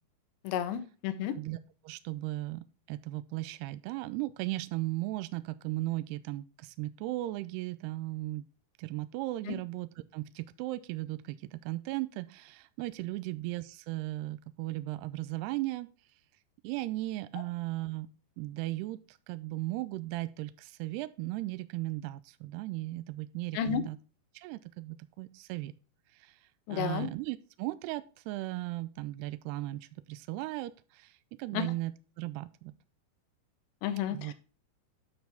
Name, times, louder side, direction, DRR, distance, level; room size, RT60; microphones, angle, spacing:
voice 1, 0.4-1.4 9.5-9.6 23.5-23.8 26.7-27.1 31.5-31.7 33.8-34.3, left 9 dB, 85° left, 10 dB, 3.2 m, -32 dB
voice 2, 1.3-8.4 8.8-15.9 16.6-18.1 18.4-24.0 24.3-25.7 26.1-32.7 34.1-34.3, right 18 dB, 85° right, 13 dB, 2.4 m, -37 dB
9.6 x 6.1 x 3.4 m, 0.36 s
omnidirectional pair, 5.0 m